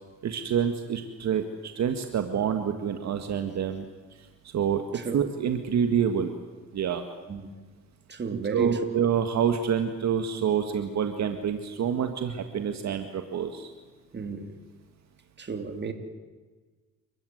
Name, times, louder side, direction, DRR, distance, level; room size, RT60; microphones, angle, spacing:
voice 1, 0.2-3.9 4.4-4.8 5.1-6.3 6.7-7.0 8.5-13.7, right 8 dB, 65° right, 1.8 m, -27 dB
voice 2, 8.1-8.7 14.1-14.6 15.4-15.9, right 5 dB, 35° right, 2.9 m, -33 dB
29.0 x 14.5 x 9.4 m
cardioid pair, 90°, 30 cm